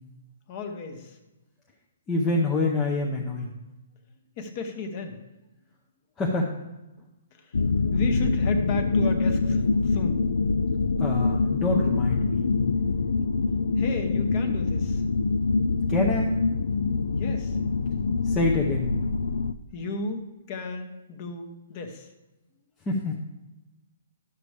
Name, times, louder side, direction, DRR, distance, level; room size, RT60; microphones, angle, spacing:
voice 1, 0.5-1.2 4.4-5.2 7.3-7.6 7.9-10.2 13.8-15.0 17.2-17.6 19.4-22.1, left 3 dB, 25° left, 5 dB, 0.9 m, -34 dB
voice 2, 2.1-3.5 6.2-6.5 11.0-12.5 15.9-16.3 18.2-18.9 22.9-23.2, left 2 dB, 10° left, -3 dB, 0.6 m, -26 dB
sound 1, 7.5-19.5, left 4 dB, 85° left, 0.4 m, -25 dB
11.0 x 6.7 x 3.3 m, 1.0 s
hypercardioid pair, 170°, 0 cm